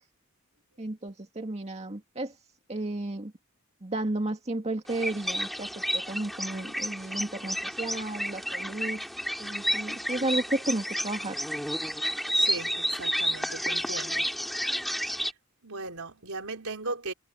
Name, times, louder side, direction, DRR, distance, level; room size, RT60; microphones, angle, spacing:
voice 1, 0.8-2.3 2.7-3.3 3.8-9.0 9.4-11.4, right 2 dB, 30° right, 2.0 m, -33 dB
sound 1, 4.9-15.3, equal, ahead, 2.2 m, -31 dB
voice 2, 12.3-14.2 15.6-17.1, right 3 dB, 70° right, 4.4 m, -37 dB
head